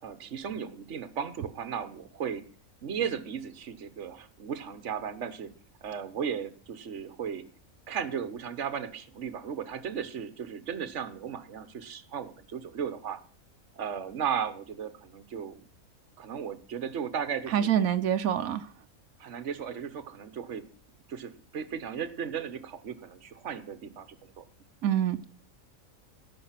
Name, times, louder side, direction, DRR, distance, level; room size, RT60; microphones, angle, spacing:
voice 1, 0.0-2.4 2.8-5.5 5.8-7.4 7.9-13.2 13.8-15.6 16.2-17.7 19.2-20.6 21.1-24.4, right 7 dB, 60° right, 1.4 m, -35 dB
voice 2, 17.5-18.7 24.8-25.3, right 10 dB, 90° right, 1.2 m, -26 dB
15.0 x 6.4 x 5.8 m
omnidirectional pair, 1.4 m